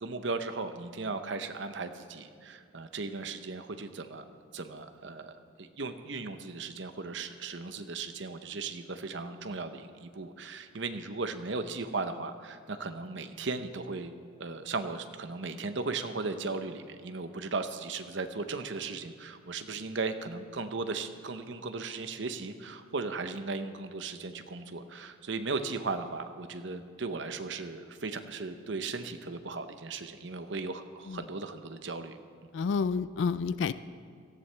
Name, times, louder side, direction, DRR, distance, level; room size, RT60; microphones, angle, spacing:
voice 1, 0.0-4.2 4.5-5.3 5.6-14.1 14.4-32.2, right 3 dB, 65° right, 8 dB, 0.8 m, -37 dB
voice 2, 32.5-33.7, left 5 dB, 65° left, 15 dB, 0.3 m, -29 dB
17.5 x 14.0 x 3.4 m, 2.2 s
head